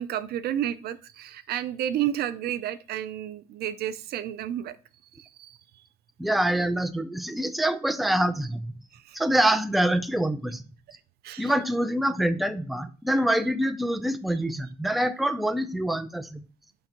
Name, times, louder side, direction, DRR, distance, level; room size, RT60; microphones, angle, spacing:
voice 1, 0.0-4.8 5.2-5.6 9.1-9.2 11.2-11.5, right 11 dB, 70° right, 14 dB, 0.5 m, -31 dB
voice 2, 6.2-8.7 9.1-10.6 11.4-16.4, right 1 dB, ahead, 10 dB, 0.5 m, -25 dB
5.3 x 4.0 x 5.8 m, 0.37 s
cardioid pair, 110°, 17 cm